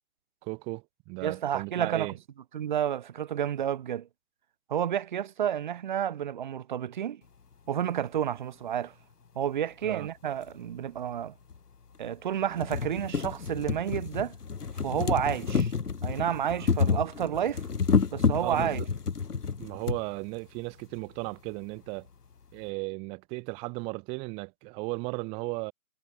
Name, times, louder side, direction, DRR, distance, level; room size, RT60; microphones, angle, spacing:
voice 1, 0.4-2.2 9.8-10.1 18.4-18.9 19.6-22.1 22.5-25.7, right 29 dB, 10° right, 2.3 m, -36 dB
voice 2, 1.2-2.1 2.5-4.1 4.7-7.2 7.7-8.9 9.4-11.3 12.0-14.4 14.8-15.7 16.0-17.6 18.1-18.8, right 9 dB, 30° right, 2.5 m, -30 dB
sound 1, 10.4-10.5 11.5-11.6 12.0-12.1 12.4-20.0 20.9-21.0 21.3-21.4, left 5 dB, 80° left, 2.4 m, -29 dB
hypercardioid pair, 165°, 46 cm